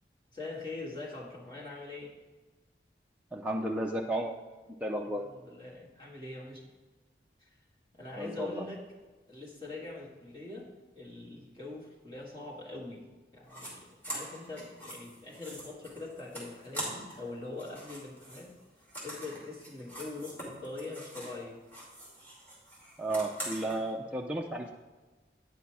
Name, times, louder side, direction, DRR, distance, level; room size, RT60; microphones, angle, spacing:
voice 1, 0.3-2.2 5.3-6.6 7.4-7.5 7.9-8.9 9.3-10.7 11.0-13.1 13.3-18.5 19.0-21.6 24.0-24.1, left 3 dB, 25° left, -5 dB, 1.9 m, -43 dB
voice 2, 3.3-4.3 4.8-5.2 8.2-8.7 23.0-24.7, right 1 dB, 5° right, -1 dB, 0.4 m, -33 dB
sound 1, 13.5-13.7 14.0-17.3 17.5-21.4 21.7-23.8, right 1 dB, 10° left, 2.4 m, -43 dB
9.3 x 5.6 x 4.7 m, 1.3 s
head